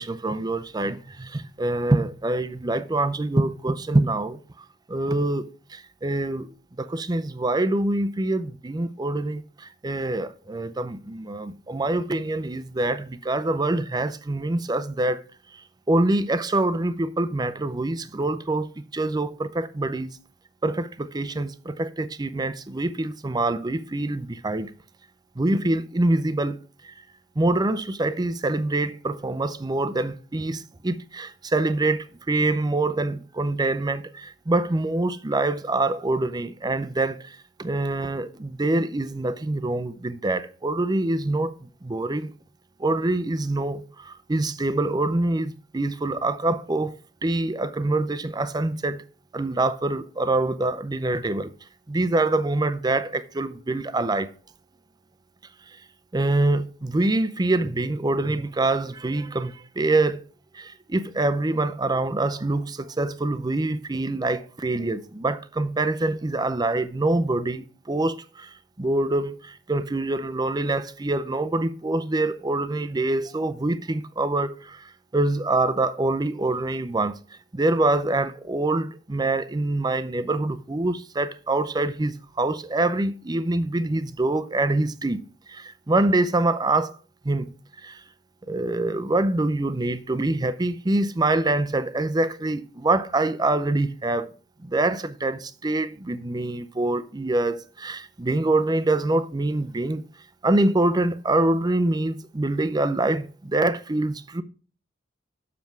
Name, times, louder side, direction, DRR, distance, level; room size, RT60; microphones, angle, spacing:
voice 1, 0.0-4.4 4.9-6.5 6.8-15.2 15.9-18.7 18.9-20.1 20.6-24.7 25.4-26.6 26.8-26.9 27.4-42.3 42.8-47.0 47.2-49.0 49.3-51.5 51.9-54.3 56.1-60.2 60.5-77.2 77.5-85.2 85.5-87.0 87.2-87.5 87.8-88.0 88.5-94.3 94.6-100.0 100.4-104.4, right 2 dB, 20° right, 0.5 m, -25 dB
7.3 x 6.8 x 4.5 m
head